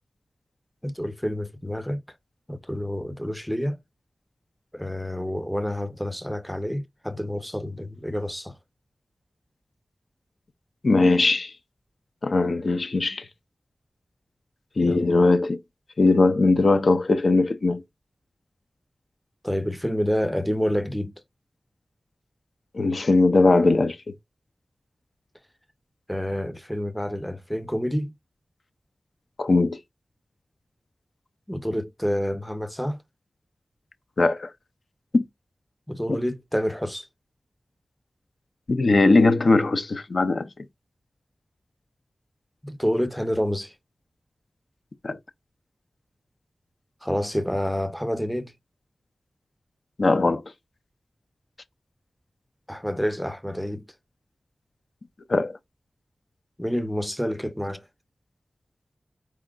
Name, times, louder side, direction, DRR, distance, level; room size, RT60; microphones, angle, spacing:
voice 1, 0.8-2.0 2.5-3.8 4.7-8.6 14.8-15.0 19.4-21.1 26.1-28.1 31.5-33.0 35.9-37.1 42.6-43.8 47.0-48.5 52.7-53.9 56.6-57.9, equal, 5° left, 0.5 m, -28 dB
voice 2, 10.8-11.5 12.2-13.2 14.8-15.6 16.0-17.8 22.7-24.0 29.4-29.8 34.2-34.5 35.1-35.2 36.1-36.2 38.7-40.5 45.0-45.2 50.0-50.4 55.3-55.6, left 3 dB, 65° left, 0.5 m, -20 dB
4.8 x 4.3 x 2.3 m
wide cardioid pair, 75°, 0 cm